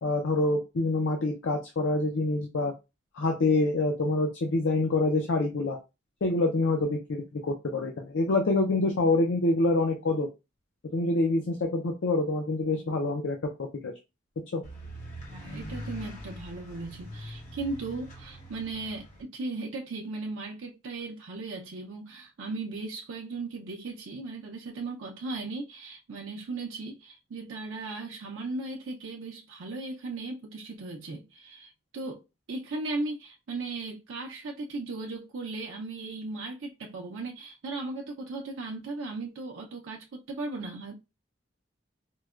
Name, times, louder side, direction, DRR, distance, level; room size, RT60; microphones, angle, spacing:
voice 1, 0.0-2.7 3.2-5.8 6.2-10.3 10.9-13.4 13.8-13.9 14.5-14.6, left 2 dB, 75° left, 0.5 m, -26 dB
sound 1, 14.6-19.2, equal, 40° left, 1.0 m, -42 dB
voice 2, 15.3-32.2 32.5-41.0, right 3 dB, 90° right, 0.5 m, -37 dB
4.5 x 2.1 x 2.3 m
head